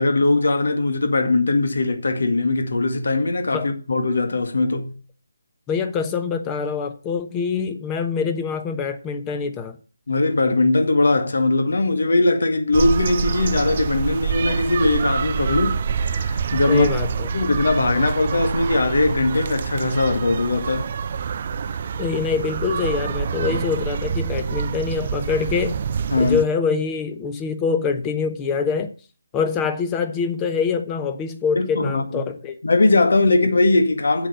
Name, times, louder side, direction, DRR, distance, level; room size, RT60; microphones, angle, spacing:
voice 1, 0.0-5.0 10.1-16.9 17.3-20.9 26.1-26.4 31.6-32.3 32.6-34.3, left 2 dB, 60° left, 1.9 m, -20 dB
voice 2, 5.7-9.8 16.7-17.3 22.0-25.8 26.2-28.9 29.3-32.6, left 5 dB, 15° left, 1.1 m, -25 dB
sound 1, 12.7-26.4, right 6 dB, 40° right, 0.5 m, -26 dB
8.3 x 7.8 x 6.6 m
figure-of-eight pair, 150°, 0 cm